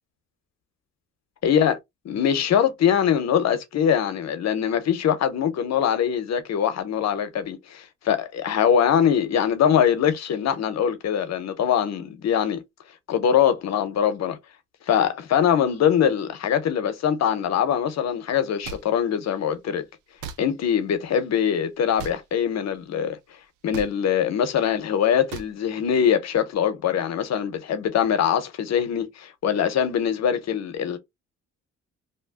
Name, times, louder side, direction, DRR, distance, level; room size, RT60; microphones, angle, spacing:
voice 1, 1.4-1.8 2.1-12.6 13.1-14.4 14.9-19.8 20.4-23.2 23.6-31.0, left 8 dB, 60° left, 0.8 m, -22 dB
sound 1, 18.6-18.8 20.2-20.4 22.0-22.2 23.7-23.9 25.3-25.5, right 7 dB, 90° right, 0.6 m, -35 dB
2.7 x 2.2 x 3.4 m
cardioid pair, 90°, 30 cm